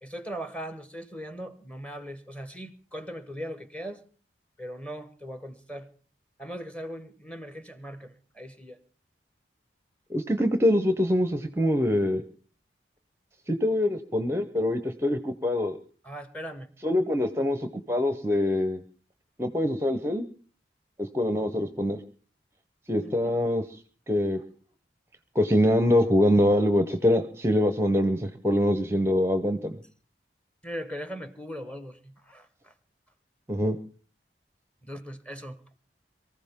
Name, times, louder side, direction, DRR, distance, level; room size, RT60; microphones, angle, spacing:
voice 1, 0.0-4.0 4.6-5.9 6.4-8.8 16.0-16.7 23.0-23.3 30.6-32.7 34.8-35.6, equal, 5° left, 11 dB, 1.1 m, -39 dB
voice 2, 10.1-12.2 13.5-15.8 16.8-18.8 19.4-20.2 21.0-22.0 22.9-23.6 24.1-24.4 25.3-29.8 33.5-33.8, left 1 dB, 15° right, 9 dB, 0.7 m, -24 dB
23.5 x 15.0 x 3.6 m, 0.39 s
head